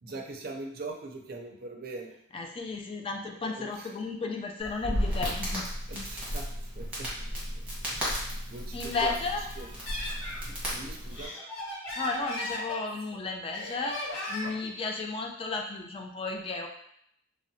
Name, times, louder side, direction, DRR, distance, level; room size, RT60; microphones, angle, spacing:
voice 1, 0.0-2.2 3.4-3.9 5.9-7.1 8.5-9.2 9.6-9.7 10.4-11.3, right 3 dB, 50° right, 1 dB, 0.5 m, -41 dB
voice 2, 2.3-5.8 8.7-9.4 12.0-14.0 14.3-16.7, left 3 dB, 30° left, 3 dB, 0.3 m, -33 dB
Crackle, 4.6-11.3, equal, 5° right, 0.9 m, -34 dB
Laughter, 8.7-10.4 10.9-13.1 13.5-14.7, left 1 dB, 85° left, 1.0 m, -37 dB
3.7 x 2.0 x 2.7 m, 0.72 s
head